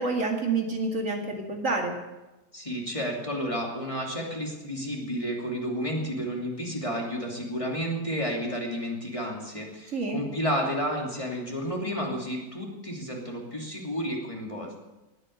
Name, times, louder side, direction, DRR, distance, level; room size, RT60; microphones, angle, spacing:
voice 1, 0.0-1.9 9.9-10.2, right 3 dB, 60° right, 1 dB, 2.5 m, -28 dB
voice 2, 2.5-14.8, equal, 20° left, -1 dB, 2.9 m, -31 dB
19.5 x 8.9 x 8.0 m, 1.1 s
omnidirectional pair, 1.5 m